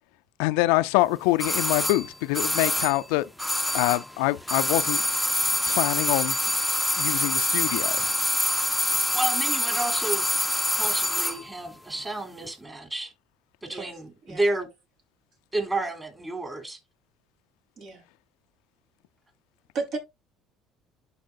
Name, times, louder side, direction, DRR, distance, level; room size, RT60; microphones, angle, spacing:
voice 1, 0.4-3.3 3.7-5.0 5.7-6.4 7.0-8.1, left 19 dB, 75° left, 0.4 m, -25 dB
sound 1, 1.4-4.2 4.4-11.4 11.7-11.8, left 1 dB, 5° left, 0.7 m, -25 dB
voice 2, 9.1-10.2 10.8-13.1 13.7-14.7 15.5-16.8, right 2 dB, 20° right, 3.2 m, -30 dB
voice 3, 13.7-14.4 17.8-18.0 19.7-20.0, right 4 dB, 60° right, 3.9 m, -34 dB
11.5 x 4.9 x 2.6 m
hypercardioid pair, 70°, 0 cm